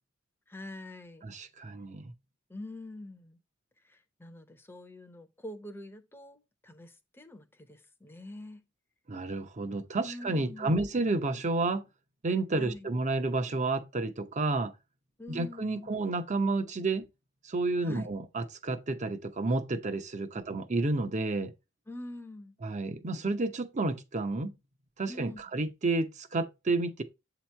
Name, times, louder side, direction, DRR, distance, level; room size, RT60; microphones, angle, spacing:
voice 1, 0.5-1.2 2.5-3.4 3.8-8.6 10.0-10.8 12.6-12.9 15.2-15.9 17.8-18.1 20.3-20.4 21.9-22.5 25.1-25.4, left 1 dB, 10° left, 0.7 m, -45 dB
voice 2, 1.2-2.1 9.1-11.8 12.2-14.7 15.3-17.1 17.4-21.5 22.6-24.5 25.0-27.0, right 2 dB, 35° right, 0.7 m, -30 dB
7.9 x 3.0 x 4.4 m
head